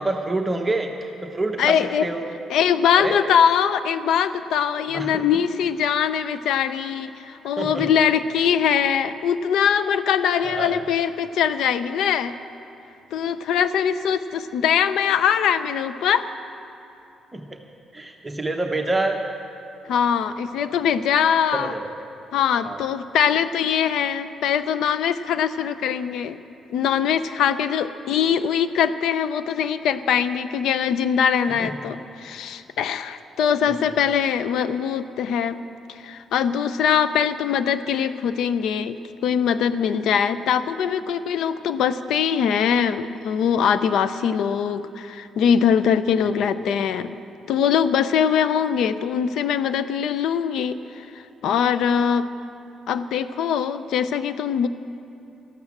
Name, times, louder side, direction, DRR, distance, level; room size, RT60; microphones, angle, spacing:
voice 1, 0.0-2.3 3.0-3.2 4.9-5.3 7.6-7.9 10.4-10.8 17.3-17.6 17.9-19.2 21.5-21.9 22.6-22.8 31.4-31.7 46.2-46.3, right 2 dB, 15° right, 2 dB, 0.9 m, -27 dB
voice 2, 1.6-2.1 2.5-12.3 13.1-16.3 19.9-21.7 22.3-26.4 26.7-35.6 35.9-39.0 39.2-47.1 47.5-51.1 51.4-52.3 52.9-54.7, left 8 dB, 80° left, 13 dB, 0.5 m, -22 dB
13.0 x 12.0 x 7.3 m, 2.8 s
cardioid pair, 90°, 0 cm